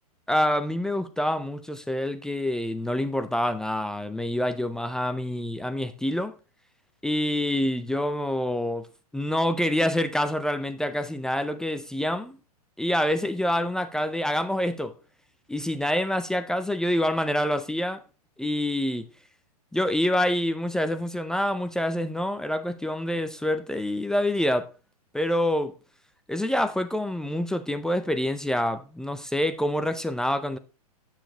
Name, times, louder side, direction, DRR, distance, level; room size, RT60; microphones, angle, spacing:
voice 1, 0.3-6.3 7.0-8.9 9.1-12.4 12.8-15.0 15.5-18.0 18.4-19.1 19.7-24.7 25.1-25.7 26.3-30.6, left 1 dB, 5° left, 0.5 m, -26 dB
11.0 x 7.3 x 2.9 m
hypercardioid pair, 130°, 20 cm